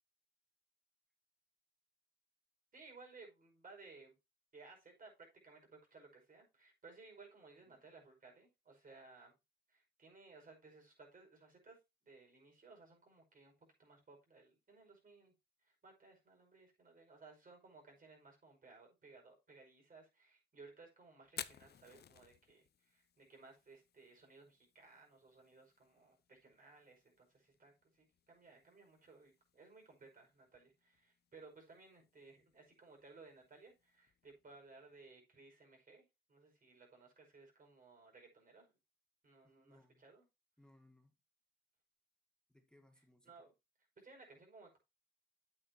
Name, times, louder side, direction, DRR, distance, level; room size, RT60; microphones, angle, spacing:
voice 1, 2.7-4.1 4.5-9.3 9.7-11.8 12.0-13.5 13.8-15.3 15.6-36.0 36.3-38.7 39.2-40.2 43.3-43.5 44.0-44.8, right 3 dB, 45° right, 5.3 m, -60 dB
Fire, 21.2-35.1, left 9 dB, 55° left, 0.6 m, -58 dB
voice 2, 39.4-40.0 40.6-41.1 42.5-43.4, left 1 dB, 5° left, 1.6 m, -67 dB
9.0 x 8.5 x 2.8 m
cardioid pair, 80°, 20 cm